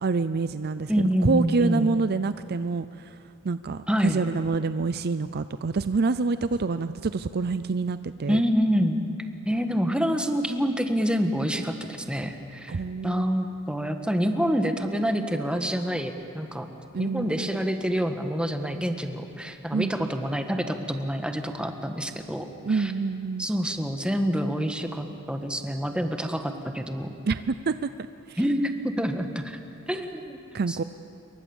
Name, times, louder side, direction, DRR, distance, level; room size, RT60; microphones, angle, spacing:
voice 1, 0.0-3.1 3.4-8.4 12.7-13.3 16.9-17.5 19.7-20.1 22.6-23.5 27.3-27.9 28.3-28.4 30.5-30.8, right 4 dB, 50° right, 12 dB, 0.5 m, -27 dB
voice 2, 0.9-1.9 3.9-4.3 8.3-9.0 9.4-16.7 17.0-22.9 23.4-27.2 28.4-29.6 29.9-30.4 30.7-30.8, equal, 5° right, 5 dB, 1.5 m, -27 dB
27.5 x 23.5 x 7.2 m, 2.6 s
head